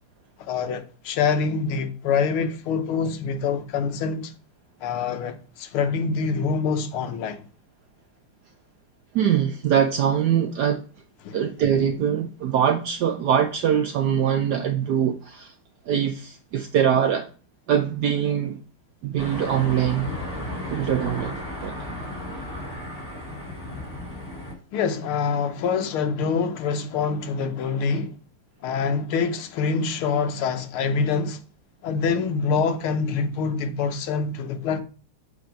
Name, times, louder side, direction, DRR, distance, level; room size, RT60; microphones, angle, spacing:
voice 1, 0.4-4.3 4.8-7.4 11.2-11.4 24.7-28.2 28.6-31.4 31.8-34.8, left 5 dB, 80° left, 1.7 m, -25 dB
voice 2, 9.1-10.8 11.3-15.5 15.9-17.3 17.7-18.6 19.0-20.1 20.7-21.9, right 9 dB, 75° right, 0.9 m, -23 dB
sound 1, 19.2-24.5, left 1 dB, 15° left, 1.9 m, -34 dB
6.7 x 3.4 x 5.2 m
omnidirectional pair, 2.4 m